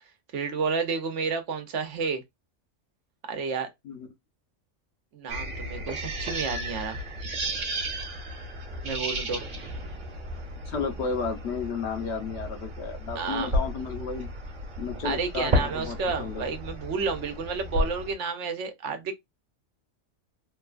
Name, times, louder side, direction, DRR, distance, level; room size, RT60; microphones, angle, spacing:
voice 1, 0.3-2.2 3.3-3.7 5.1-7.0 8.8-9.4 13.1-13.5 15.0-19.1, right 5 dB, 70° right, 1.0 m, -31 dB
sound 1, 5.3-18.1, equal, 45° right, 1.1 m, -33 dB
voice 2, 10.7-14.3 14.8-16.4, left 5 dB, 65° left, 0.9 m, -33 dB
3.0 x 2.3 x 2.4 m
omnidirectional pair, 1.3 m